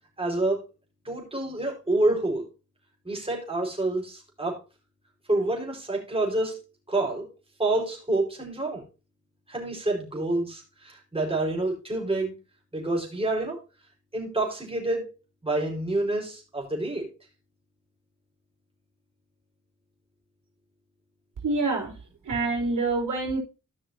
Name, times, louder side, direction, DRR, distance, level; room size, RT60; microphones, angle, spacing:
voice 1, 0.2-0.6 1.0-2.5 3.0-4.6 5.3-6.6 6.9-7.2 7.6-8.8 9.5-12.3 12.7-13.6 14.1-15.1 15.4-17.1, right 2 dB, 20° right, -2 dB, 4.4 m, -27 dB
voice 2, 21.4-21.9 22.3-23.4, right 3 dB, 80° right, -3 dB, 3.5 m, -26 dB
15.0 x 6.0 x 2.7 m, 0.30 s
cardioid pair, 70°, 31 cm